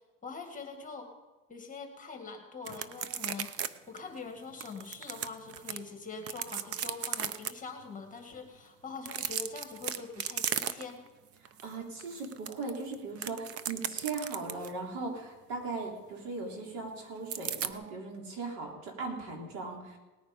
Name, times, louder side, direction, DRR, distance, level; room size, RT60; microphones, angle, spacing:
voice 1, 0.2-1.1 1.5-11.0, left 4 dB, 20° left, 4 dB, 2.1 m, -43 dB
sound 1, 2.6-3.7 4.0-4.1 4.6-5.8 6.2-7.5 9.0-11.1 11.4-11.7 12.0-14.8 17.3-17.7, right 9 dB, 35° right, 0.8 m, -35 dB
voice 2, 11.6-20.0, right 3 dB, 60° right, 0 dB, 4.1 m, -38 dB
18.5 x 9.4 x 5.2 m, 1.2 s
supercardioid pair, 115°, 39 cm